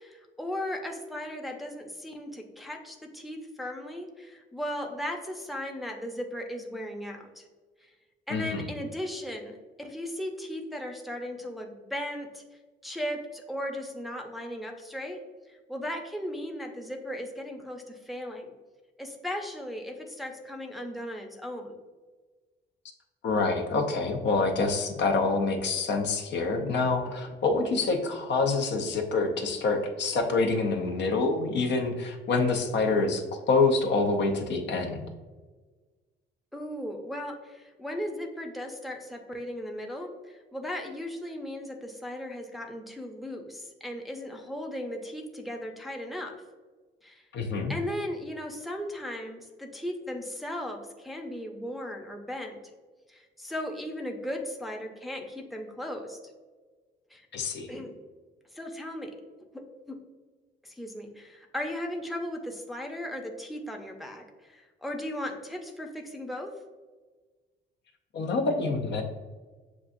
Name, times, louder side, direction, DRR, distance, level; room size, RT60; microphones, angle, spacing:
voice 1, 0.0-7.5 7.8-7.9 8.3-12.4 12.8-15.2 15.5-18.5 19.0-21.8 36.5-46.4 47.0-47.3 47.7-52.6 53.1-56.2 57.1-57.3 57.7-57.9 58.5-59.1 59.9-60.0 60.6-66.5, left 1 dB, ahead, 1 dB, 0.6 m, -37 dB
voice 2, 8.3-8.7 23.2-35.1 47.3-47.7 57.3-57.7 68.1-69.0, left 3 dB, 65° left, 4 dB, 0.7 m, -26 dB
7.1 x 2.4 x 2.6 m, 1.3 s
cardioid pair, 90°, 20 cm